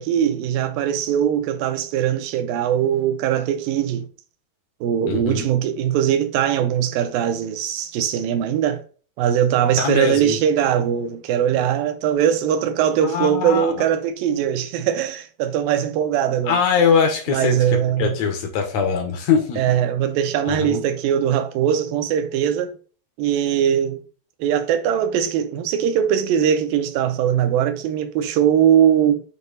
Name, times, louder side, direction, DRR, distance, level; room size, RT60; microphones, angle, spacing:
voice 1, 0.0-4.1 4.8-8.8 9.2-16.6 17.3-18.1 19.6-22.8 23.2-24.0 24.4-29.2, right 9 dB, 75° right, 2.3 m, -21 dB
voice 2, 5.0-5.5 9.8-10.4 13.0-13.8 16.5-19.8 20.5-20.8, left 6 dB, 70° left, 1.7 m, -22 dB
8.1 x 2.9 x 4.1 m
omnidirectional pair, 4.5 m